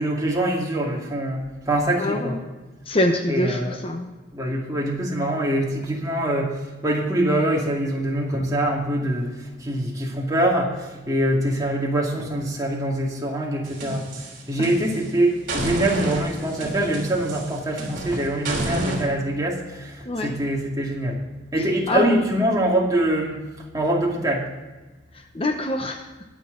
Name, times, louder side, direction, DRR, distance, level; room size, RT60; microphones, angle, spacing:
voice 1, 0.0-2.4 3.3-3.8 4.0-21.2 21.5-24.5, right 1 dB, 20° right, -2 dB, 2.3 m, -24 dB
voice 2, 2.0-2.4 2.9-4.1 14.6-14.7 20.0-20.3 21.9-22.2 25.1-26.1, left 1 dB, 30° left, 5 dB, 0.9 m, -25 dB
sound 1, 13.6-15.1 15.5-19.0, right 1 dB, 45° right, 3.4 m, -29 dB
22.0 x 7.5 x 3.9 m, 1.2 s
head